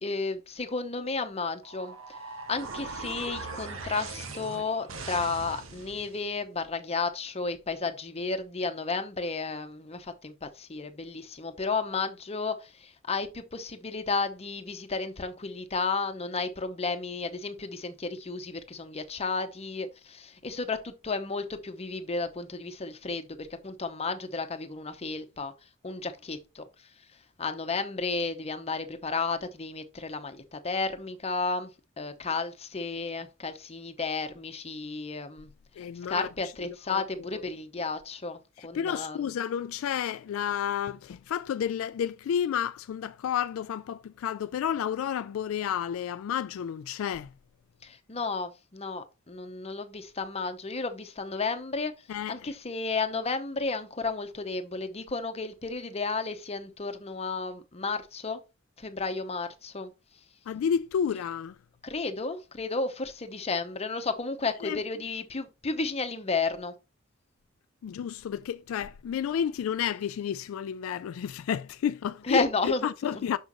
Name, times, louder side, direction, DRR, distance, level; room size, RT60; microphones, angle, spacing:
voice 1, 0.0-2.2 2.5-25.5 25.8-26.9 27.4-31.7 32.0-35.5 35.8-39.3 47.8-51.9 52.3-58.4 58.8-59.9 61.8-66.7 72.2-73.3, left 4 dB, 30° left, 0.8 m, -33 dB
sound 1, 1.6-6.2, right 3 dB, 70° right, 1.2 m, -40 dB
voice 2, 35.8-36.3 36.9-37.0 38.6-47.3 52.1-52.3 60.5-61.6 64.6-64.8 67.8-73.4, left 8 dB, 75° left, 0.3 m, -31 dB
6.4 x 6.1 x 3.0 m
head